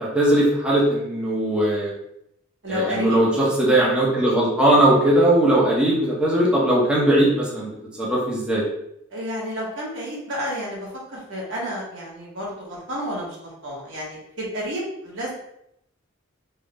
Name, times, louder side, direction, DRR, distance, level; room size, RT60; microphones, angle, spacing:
voice 1, 0.0-1.9 2.7-7.7 8.0-8.6, right 1 dB, 5° right, -7 dB, 0.8 m, -19 dB
voice 2, 2.6-3.2 9.1-15.3, equal, 70° right, -5 dB, 1.4 m, -31 dB
3.6 x 2.3 x 4.0 m, 0.78 s
head